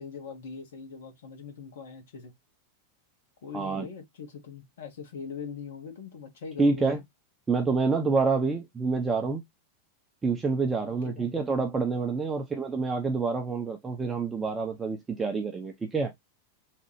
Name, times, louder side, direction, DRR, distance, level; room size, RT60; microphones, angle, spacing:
voice 1, 0.0-2.3 3.4-7.0 10.8-11.3, left 5 dB, 60° left, 1.1 m, -41 dB
voice 2, 3.5-3.9 6.6-7.0 7.5-9.4 10.2-16.1, right 4 dB, 15° right, 0.6 m, -27 dB
3.3 x 2.3 x 3.0 m
figure-of-eight pair, 90°, 0 cm